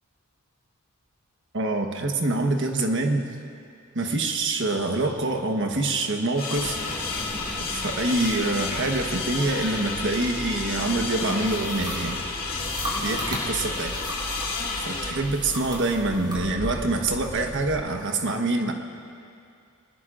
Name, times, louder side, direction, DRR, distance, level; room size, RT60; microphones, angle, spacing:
voice 1, 1.5-3.3 3.9-6.8 7.6-12.3 13.0-14.0 14.8-18.7, right 2 dB, 55° right, 4 dB, 1.3 m, -25 dB
sound 1, 6.4-15.1, left 4 dB, 40° left, 2.2 m, -31 dB
sound 2, 6.5-17.8, equal, ahead, 1.8 m, -39 dB
sound 3, 11.4-14.7 15.1-16.4, right 1 dB, 20° right, 4.6 m, -37 dB
24.0 x 19.5 x 2.6 m, 2.4 s
head